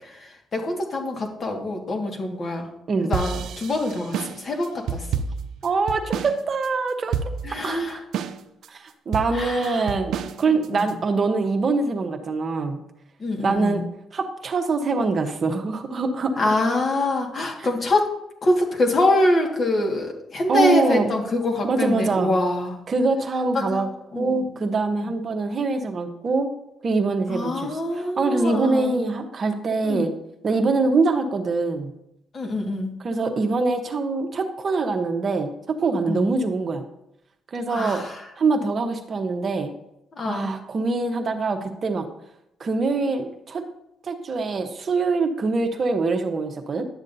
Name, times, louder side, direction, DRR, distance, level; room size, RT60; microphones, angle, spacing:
voice 1, 0.0-2.7 3.0-5.1 7.4-8.0 9.3-9.8 10.5-10.9 13.2-13.8 16.4-18.1 18.4-22.8 23.5-23.8 24.1-24.7 25.0-25.1 27.3-29.0 29.8-30.1 30.6-30.7 32.3-32.9 36.1-36.3 37.7-38.2 40.1-40.5, left 2 dB, 45° left, 1 dB, 1.7 m, -25 dB
sound 1, 3.1-6.4 6.6-6.7 7.1-7.7 8.1-8.7 9.1-10.9, right 7 dB, 75° right, 0.5 m, -29 dB
voice 2, 5.6-7.2 7.5-8.0 8.7-12.8 13.4-13.8 14.1-16.3 17.6-17.7 20.5-21.1 21.6-22.3 22.9-23.9 24.1-26.5 26.8-30.1 30.4-31.9 33.0-36.8 37.5-38.0 38.4-39.7 40.2-42.1 42.6-43.6 44.0-46.8, right 3 dB, 45° right, 6 dB, 0.9 m, -24 dB
11.0 x 7.2 x 2.7 m, 0.82 s
cardioid pair, 90°, 0 cm